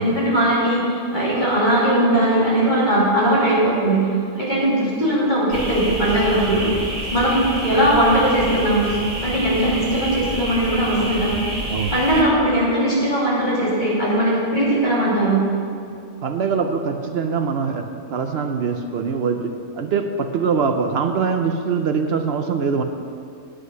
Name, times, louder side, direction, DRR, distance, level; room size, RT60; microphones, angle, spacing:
voice 1, 0.0-4.1 4.4-6.7 7.1-8.9 9.2-11.4 11.9-15.4, right 1 dB, 30° left, -8 dB, 3.1 m, -19 dB
sound 1, 5.5-12.2, right 1 dB, 30° right, 2.1 m, -29 dB
voice 2, 16.2-22.8, right 5 dB, 60° right, 6 dB, 0.7 m, -23 dB
9.9 x 8.2 x 5.6 m, 2.4 s
omnidirectional pair, 1.5 m